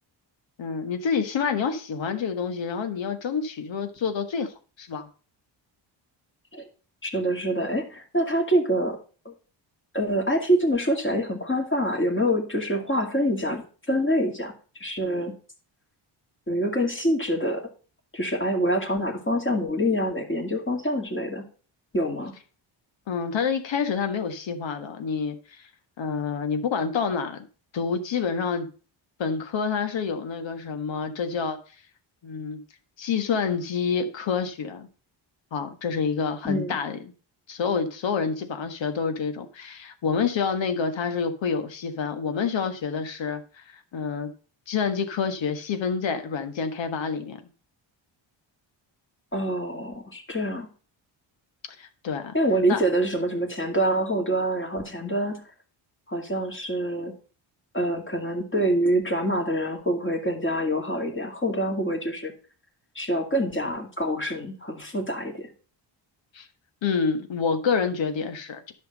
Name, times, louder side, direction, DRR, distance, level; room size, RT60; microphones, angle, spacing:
voice 1, 0.6-4.5 4.8-5.1 23.1-25.6 26.0-27.5 27.7-28.7 29.2-31.6 32.2-32.6 33.0-34.9 35.5-37.0 37.5-43.4 43.7-44.3 44.7-47.4 51.8-52.3 52.7-52.8 66.3-66.5 66.8-68.7, left 6 dB, 65° left, 1.6 m, -28 dB
voice 2, 7.0-9.0 9.2-9.3 9.9-14.5 14.8-15.3 16.5-17.6 18.1-21.4 21.9-22.3 36.4-36.8 49.3-50.7 52.3-55.4 56.1-57.1 57.7-62.3 62.9-65.5, equal, 25° left, 2.5 m, -26 dB
10.5 x 6.0 x 5.2 m
cardioid pair, 85°, 48 cm